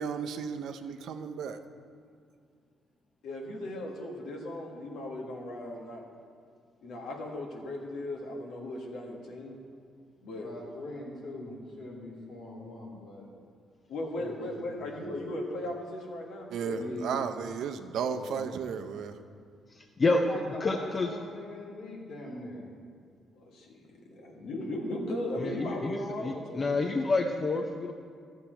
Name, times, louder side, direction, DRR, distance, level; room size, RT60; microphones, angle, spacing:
voice 1, 0.0-1.6 16.5-19.2, right 6 dB, 75° right, 7 dB, 0.6 m, -34 dB
voice 2, 3.2-6.0 6.8-9.6 10.2-10.5 13.9-17.0 23.3-27.1, left 1 dB, 80° left, 0 dB, 1.4 m, -37 dB
voice 3, 10.3-13.3 14.2-15.4 16.7-17.2 18.1-18.4 20.1-22.7, left 1 dB, 60° left, -3 dB, 2.8 m, -42 dB
voice 4, 19.7-20.2 20.6-21.1 25.4-27.9, left 3 dB, 35° left, 4 dB, 0.5 m, -29 dB
11.5 x 7.3 x 4.4 m, 2.2 s
cardioid pair, 90°, 0 cm